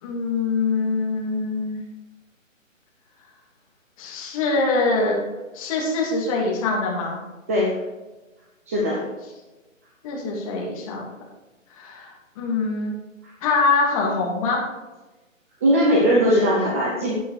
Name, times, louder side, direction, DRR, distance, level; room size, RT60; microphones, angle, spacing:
voice 1, 0.0-1.8 4.0-5.2 5.5-7.2 10.0-11.0 11.7-12.9 13.4-14.6, left 3 dB, 25° left, -3 dB, 2.7 m, -24 dB
voice 2, 7.5-7.8 8.7-9.0 13.2-13.3 15.6-17.1, equal, 10° right, -4 dB, 0.7 m, -20 dB
9.0 x 8.4 x 5.0 m, 1.1 s
figure-of-eight pair, 145°, 40 cm